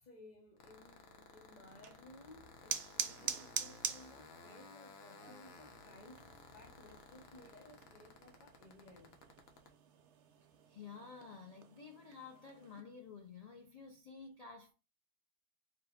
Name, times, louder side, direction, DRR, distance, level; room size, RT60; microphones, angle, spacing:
voice 1, 0.0-9.1, left 2 dB, 40° left, 0.6 m, -59 dB
sound 1, 0.6-9.7, left 4 dB, 70° left, 1.2 m, -56 dB
sound 2, 1.7-12.8, right 8 dB, 65° right, 0.7 m, -46 dB
voice 2, 10.7-14.7, left 5 dB, 85° left, 0.3 m, -52 dB
4.4 x 2.1 x 4.2 m
omnidirectional pair, 1.6 m